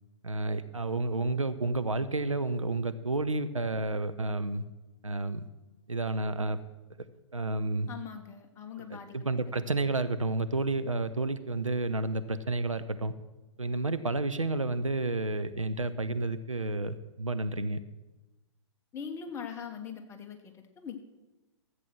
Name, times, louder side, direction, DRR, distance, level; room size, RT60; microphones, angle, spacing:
voice 1, 0.2-4.6 5.0-5.5 5.9-6.6 7.3-7.9 8.8-13.1 13.6-17.8, right 2 dB, 90° right, 11 dB, 0.8 m, -31 dB
voice 2, 7.9-9.1 18.9-21.0, left 7 dB, 15° left, 4 dB, 1.1 m, -41 dB
14.0 x 7.9 x 6.1 m, 1.1 s
figure-of-eight pair, 120°, 16 cm